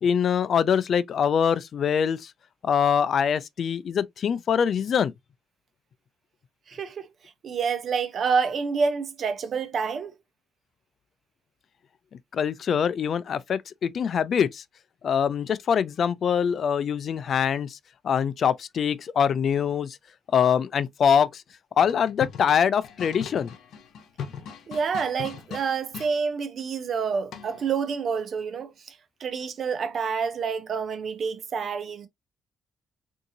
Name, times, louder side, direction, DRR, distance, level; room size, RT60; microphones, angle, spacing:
voice 1, 0.0-2.3 2.6-5.1 12.3-14.6 15.0-17.8 18.0-20.0 20.3-21.4 21.8-23.5, left 7 dB, 55° left, 0.4 m, -24 dB
voice 2, 6.7-7.1 7.4-10.1 24.7-32.1, right 5 dB, 55° right, 0.8 m, -28 dB
sound 1, 21.8-26.1 27.3-27.7, left 7 dB, 75° left, 0.8 m, -39 dB
3.7 x 2.7 x 2.7 m
cardioid pair, 90°, 0 cm